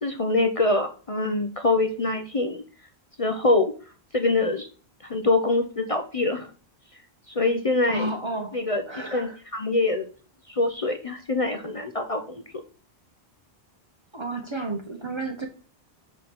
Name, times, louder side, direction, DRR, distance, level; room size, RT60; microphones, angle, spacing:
voice 1, 0.0-2.6 3.2-3.7 4.1-4.7 5.0-6.5 7.3-8.1 8.5-10.1 10.5-12.4, left 2 dB, 40° left, 5 dB, 0.7 m, -24 dB
voice 2, 7.9-8.6 8.9-9.4 14.1-15.5, right 2 dB, 30° right, 4 dB, 0.9 m, -31 dB
5.1 x 4.0 x 5.9 m, 0.38 s
omnidirectional pair, 1.1 m